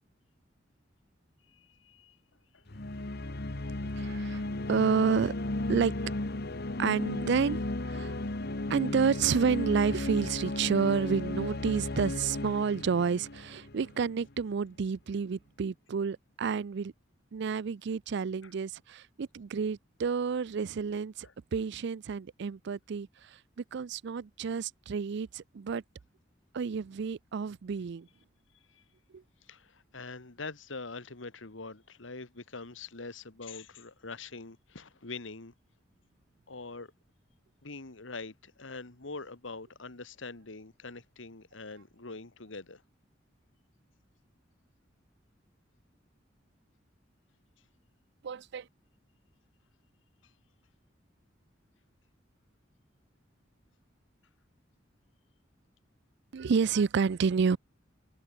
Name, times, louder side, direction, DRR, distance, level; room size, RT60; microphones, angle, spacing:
voice 1, 1.5-2.2 2.5-2.7 18.4-18.5 21.2-21.3 28.7-28.8 29.4-35.5 36.5-36.9 37.6-42.8 50.2-50.3, left 3 dB, 80° left, 1.8 m, -44 dB
sound 1, 2.7-14.2, left 2 dB, 55° left, 1.4 m, -35 dB
voice 2, 4.0-5.3 5.7-6.0 6.8-8.1 8.7-16.9 17.3-25.8 26.5-28.1 29.1-29.2 48.2-48.7 56.3-57.6, right 5 dB, 65° right, 0.4 m, -30 dB
head